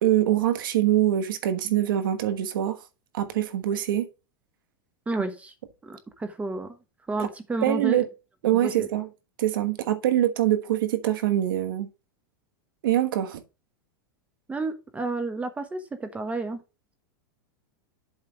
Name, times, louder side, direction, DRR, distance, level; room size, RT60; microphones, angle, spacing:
voice 1, 0.0-2.8 3.1-4.1 7.2-7.3 7.6-8.1 8.4-9.1 9.4-11.9 12.8-13.4, right 12 dB, 80° right, 1.2 m, -24 dB
voice 2, 5.1-5.5 5.8-6.8 7.1-8.0 8.5-8.9 14.5-16.6, right 3 dB, 10° right, 1.0 m, -31 dB
7.8 x 3.3 x 6.0 m
supercardioid pair, 140°, 11 cm